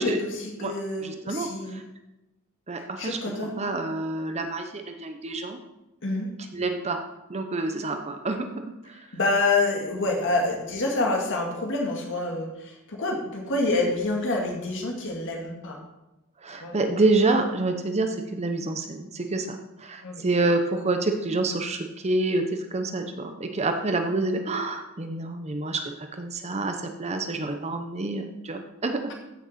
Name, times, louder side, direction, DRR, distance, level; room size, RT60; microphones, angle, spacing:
voice 1, 0.0-1.8 3.0-3.6 6.0-6.3 9.1-15.8 16.6-16.8 20.0-20.2, left 2 dB, 60° left, 1 dB, 2.0 m, -27 dB
voice 2, 1.0-1.8 2.7-3.2 3.6-5.6 6.5-7.0 7.3-9.1 16.4-29.1, right 2 dB, 30° right, 5 dB, 0.8 m, -27 dB
14.5 x 6.6 x 4.2 m, 0.96 s
head